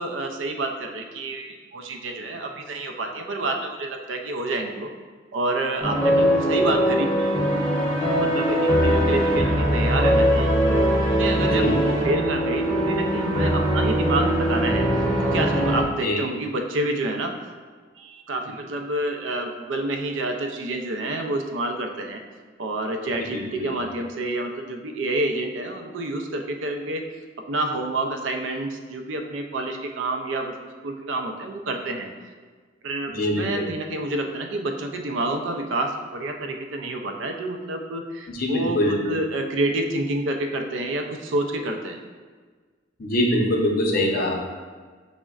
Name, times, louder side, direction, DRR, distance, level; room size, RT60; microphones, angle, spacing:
voice 1, 0.0-4.9 5.3-7.4 7.9-10.5 11.2-14.8 15.3-17.3 18.0-22.2 22.6-27.0 27.5-30.5 30.8-32.1 32.8-42.0, right 2 dB, 75° right, 4 dB, 0.4 m, -28 dB
sound 1, 5.8-15.8, equal, 5° left, 0.7 m, -21 dB
voice 2, 23.3-23.8 33.1-33.7 38.3-39.0 43.0-44.4, left 1 dB, 50° left, 0 dB, 0.6 m, -24 dB
6.1 x 2.1 x 2.3 m, 1.5 s
head